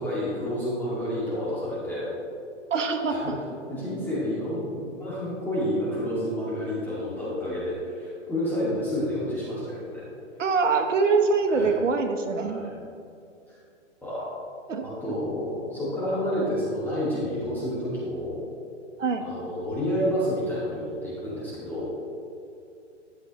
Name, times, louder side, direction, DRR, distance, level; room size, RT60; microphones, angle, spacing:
voice 1, 0.0-2.1 3.1-3.4 3.7-10.1 11.5-11.7 12.3-12.7 14.0-14.3 14.8-18.4 19.2-21.9, equal, 5° left, -10 dB, 2.1 m, -29 dB
voice 2, 2.7-3.4 10.4-12.7 14.7-14.8 19.0-19.2, right 4 dB, 85° right, 5 dB, 1.1 m, -24 dB
12.0 x 7.8 x 3.1 m, 2.5 s
hypercardioid pair, 135°, 36 cm